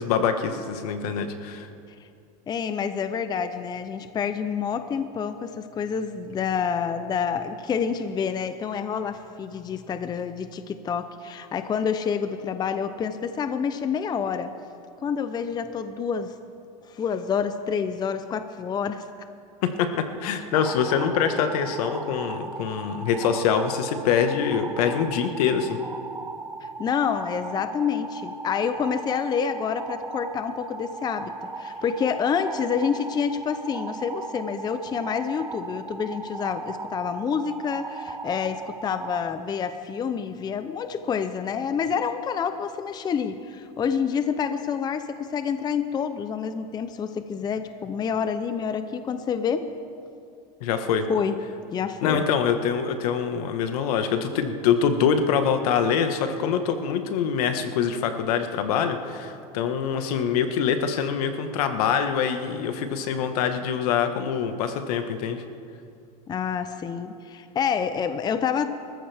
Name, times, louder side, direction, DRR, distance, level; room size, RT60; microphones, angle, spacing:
voice 1, 0.0-1.7 19.6-25.8 50.6-51.1 52.0-65.4, left 7 dB, 75° left, 7 dB, 1.5 m, -24 dB
voice 2, 2.5-14.5 15.0-16.3 16.9-19.1 26.6-49.7 51.1-51.3 51.7-52.2 66.3-68.7, left 6 dB, 20° left, 10 dB, 0.6 m, -28 dB
sound 1, 20.5-39.2, right 3 dB, 10° right, 1.0 m, -37 dB
24.5 x 14.5 x 3.5 m, 2.5 s
supercardioid pair, 135°, 19 cm